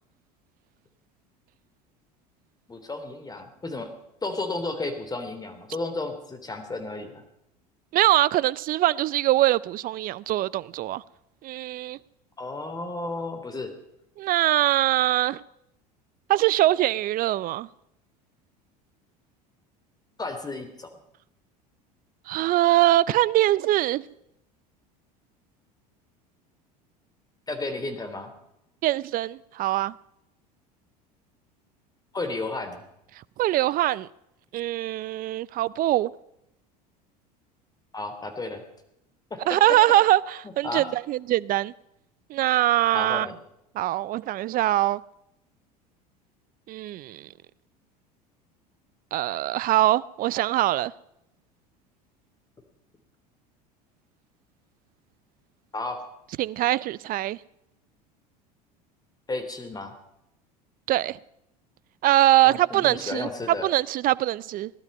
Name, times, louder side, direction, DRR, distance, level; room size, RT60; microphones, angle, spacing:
voice 1, 2.7-3.9 4.2-7.2 12.4-13.7 20.2-20.9 27.5-28.3 32.1-32.8 37.9-38.6 39.3-39.6 40.6-40.9 42.9-43.4 55.7-56.0 59.3-59.9 62.4-63.7, left 2 dB, 20° left, 3.2 m, -33 dB
voice 2, 7.9-11.0 11.4-12.0 14.2-15.4 16.3-17.7 22.3-24.1 28.8-29.9 33.4-34.1 34.5-36.1 39.5-41.7 42.3-43.3 43.7-45.0 46.7-47.3 49.1-50.9 56.4-57.4 60.9-61.2 62.0-63.3 63.6-64.7, right 15 dB, 45° right, 0.6 m, -23 dB
18.0 x 12.0 x 5.4 m
hypercardioid pair, 80°, 21 cm